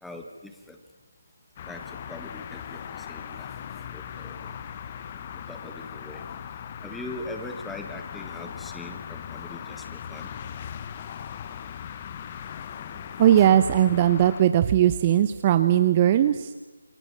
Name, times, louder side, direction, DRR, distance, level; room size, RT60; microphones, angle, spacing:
voice 1, 0.0-0.8 1.7-3.5 3.9-4.5 5.3-6.2 6.8-10.3 12.7-13.6, left 1 dB, ahead, 5 dB, 1.6 m, -42 dB
sound 1, 1.6-14.4, left 8 dB, 25° left, 1.1 m, -39 dB
voice 2, 13.2-16.5, right 11 dB, 25° right, 11 dB, 0.8 m, -19 dB
28.5 x 22.5 x 7.4 m, 1.1 s
figure-of-eight pair, 160°, 0 cm